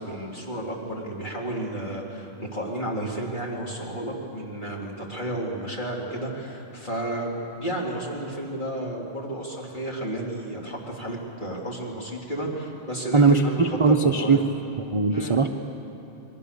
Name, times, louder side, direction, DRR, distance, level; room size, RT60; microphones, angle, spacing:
voice 1, 0.0-7.3 7.6-14.4 15.1-15.4, right 1 dB, 35° left, -3 dB, 3.7 m, -32 dB
voice 2, 13.1-14.4 14.8-15.5, right 4 dB, 30° right, 4 dB, 0.7 m, -20 dB
28.5 x 22.0 x 7.0 m, 2.9 s
omnidirectional pair, 1.4 m